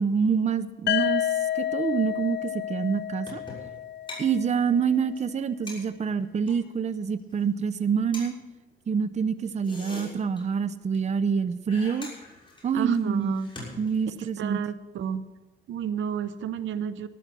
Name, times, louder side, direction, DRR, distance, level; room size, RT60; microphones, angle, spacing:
voice 1, 0.0-3.4 4.2-8.3 8.9-12.1 12.6-13.3 13.8-14.6, right 6 dB, 35° right, 13 dB, 0.6 m, -26 dB
sound 1, 0.9-4.7, left 11 dB, 60° left, 0.6 m, -30 dB
sound 2, 3.3-3.8 4.1-4.2 4.5-4.6 4.9-5.0 5.2-5.3 5.7-6.6 7.2-7.4 7.7-7.8 8.1-8.3 9.4-10.7 10.9-11.4 11.7-14.3, left 2 dB, 25° left, 6.5 m, -43 dB
voice 2, 12.7-13.5 14.4-15.3 15.7-17.1, right 7 dB, 75° right, 13 dB, 0.9 m, -31 dB
14.5 x 11.5 x 6.0 m, 1.1 s
cardioid pair, 90°, 20 cm